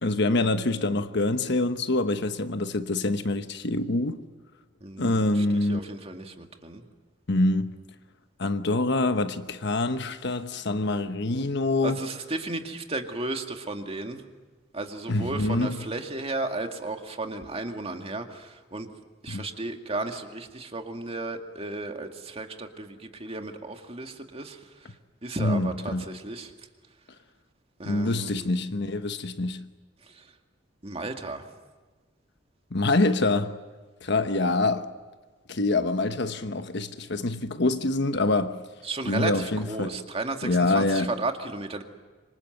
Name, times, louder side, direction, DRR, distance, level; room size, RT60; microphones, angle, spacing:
voice 1, 0.0-4.2 5.0-5.8 7.3-7.8 8.4-12.0 15.1-15.8 19.3-19.5 25.4-26.0 27.9-29.6 32.7-33.6 34.0-34.9 35.5-38.6 39.1-40.0 40.4-41.1, left 2 dB, 65° left, 1.2 m, -25 dB
voice 2, 4.8-6.8 11.8-14.2 14.7-18.9 19.2-24.6 25.2-26.5 27.8-28.3 30.8-31.5 38.8-41.8, right 2 dB, 30° right, 2.1 m, -34 dB
26.5 x 25.0 x 7.9 m
head